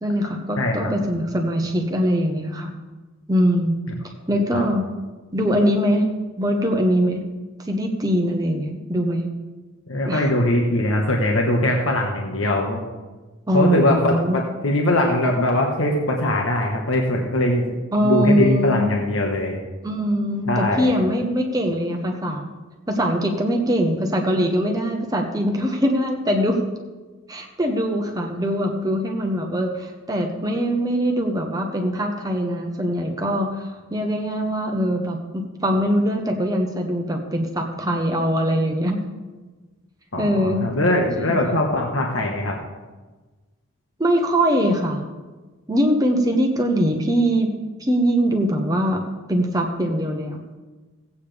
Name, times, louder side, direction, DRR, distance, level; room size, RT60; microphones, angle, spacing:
voice 1, 0.0-2.7 3.3-3.7 4.3-4.8 5.3-6.0 6.4-7.2 7.6-9.3 10.0-10.3 13.5-14.4 17.9-19.0 19.8-22.5 22.9-26.6 27.3-39.0 40.2-40.7 41.2-41.4 44.0-45.0 45.7-47.5 47.8-49.0 49.3-50.4, equal, 15° right, 2 dB, 0.9 m, -22 dB
voice 2, 0.6-1.0 4.5-4.6 9.9-12.8 13.5-17.6 18.0-19.6 20.5-20.9 40.1-42.6, left 1 dB, 70° left, 0 dB, 1.3 m, -21 dB
16.5 x 8.4 x 3.4 m, 1.3 s
head